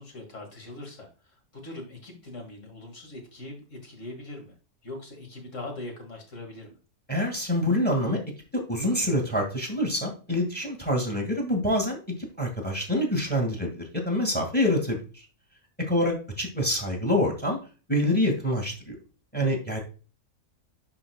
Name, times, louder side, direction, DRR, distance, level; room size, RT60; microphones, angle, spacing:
voice 1, 0.0-4.6 4.8-6.8 17.1-17.2, left 2 dB, 50° left, 2 dB, 2.4 m, -41 dB
voice 2, 7.1-8.2 8.5-12.0 12.4-15.3 15.9-17.6 17.9-19.0 19.3-19.8, left 1 dB, 5° left, 2 dB, 1.9 m, -26 dB
11.0 x 4.4 x 2.3 m, 0.34 s
omnidirectional pair, 1.6 m